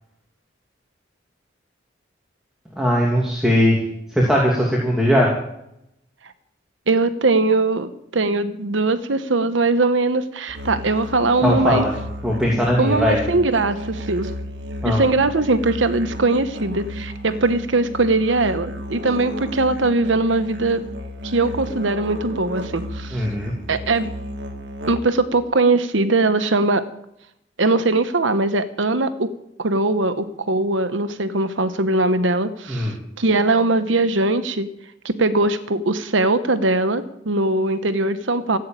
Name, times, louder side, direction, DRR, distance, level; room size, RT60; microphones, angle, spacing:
voice 1, 2.8-3.8 4.1-5.3 11.4-11.9 12.2-13.2 14.8-15.0 23.1-23.5 32.7-32.9, equal, 5° right, -3 dB, 2.6 m, -19 dB
voice 2, 6.9-11.8 12.8-14.3 14.8-20.8 21.2-23.3 23.7-24.1 24.9-26.8 27.6-29.3 29.6-34.7 35.0-38.6, right 2 dB, 85° right, 11 dB, 1.1 m, -20 dB
Musical instrument, 10.5-25.2, equal, 60° right, 2.0 m, -33 dB
15.0 x 8.6 x 9.1 m, 0.79 s
head